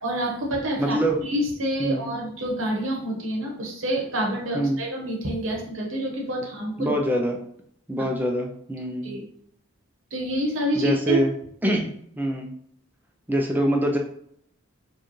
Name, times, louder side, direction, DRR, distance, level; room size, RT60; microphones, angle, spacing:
voice 1, 0.0-6.9 8.0-8.1 9.0-9.2 10.1-11.2, right 1 dB, 65° right, -1 dB, 1.0 m, -27 dB
voice 2, 0.8-1.2 1.8-2.1 4.5-4.8 6.8-7.4 7.9-9.1 10.8-11.3 11.6-11.9 12.2-12.5 13.3-14.0, right 1 dB, 10° right, 1 dB, 0.4 m, -24 dB
4.6 x 2.3 x 3.1 m, 0.67 s
head